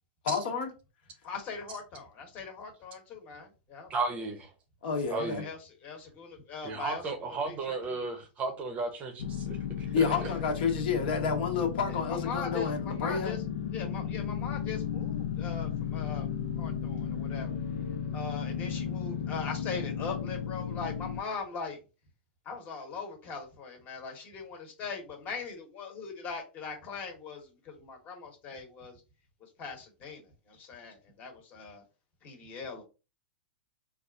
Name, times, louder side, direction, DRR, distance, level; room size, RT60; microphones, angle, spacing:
voice 1, 0.2-0.7 4.8-5.4 9.9-13.3, left 5 dB, 60° left, 1.0 m, -30 dB
voice 2, 1.2-3.9 5.1-7.8 10.1-10.3 11.9-13.4 13.7-16.3 16.6-17.6 18.1-21.8 22.4-29.0 29.6-31.8 32.2-32.8, left 5 dB, 30° left, 1.1 m, -41 dB
voice 3, 3.9-4.4 5.1-5.5 6.6-10.3, right 3 dB, 25° right, 0.7 m, -34 dB
sound 1, 9.2-21.2, left 8 dB, 80° left, 0.4 m, -34 dB
4.0 x 2.4 x 2.4 m
hypercardioid pair, 145°, 6 cm